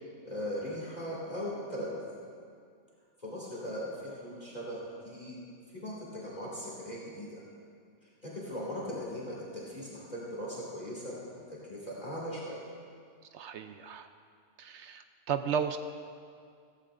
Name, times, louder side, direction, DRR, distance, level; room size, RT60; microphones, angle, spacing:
voice 1, 0.2-2.0 3.2-5.4 5.8-7.4 8.2-12.6, equal, 35° left, -7 dB, 2.4 m, -39 dB
voice 2, 13.3-14.1 14.6-15.8, right 7 dB, 70° right, 8 dB, 0.8 m, -34 dB
16.0 x 15.0 x 2.5 m, 2.2 s
omnidirectional pair, 1.3 m